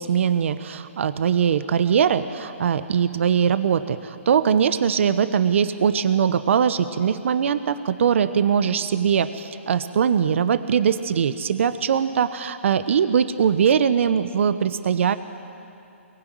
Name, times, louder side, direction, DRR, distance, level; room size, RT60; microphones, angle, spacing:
voice 1, 0.0-15.1, right 7 dB, 65° right, 12 dB, 1.1 m, -21 dB
22.5 x 22.0 x 9.3 m, 2.6 s
hypercardioid pair, 135°, 7 cm